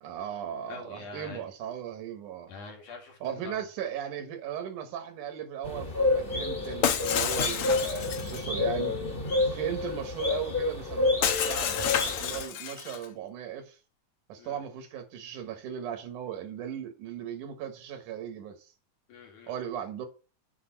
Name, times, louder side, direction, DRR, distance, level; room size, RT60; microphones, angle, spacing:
voice 1, 0.0-2.5 3.2-8.9 9.5-11.8 12.2-13.8 14.3-18.6 19.5-20.1, right 9 dB, 90° right, 2.9 m, -37 dB
voice 2, 0.7-1.5 2.5-3.7 9.2-9.4 14.4-14.6 19.1-19.5, left 4 dB, 85° left, 3.9 m, -45 dB
sound 1, 5.6-12.4, left 3 dB, 25° left, 1.3 m, -29 dB
Shatter, 6.8-8.4 11.2-13.0, left 9 dB, 65° left, 1.5 m, -29 dB
8.5 x 4.6 x 5.8 m
omnidirectional pair, 3.5 m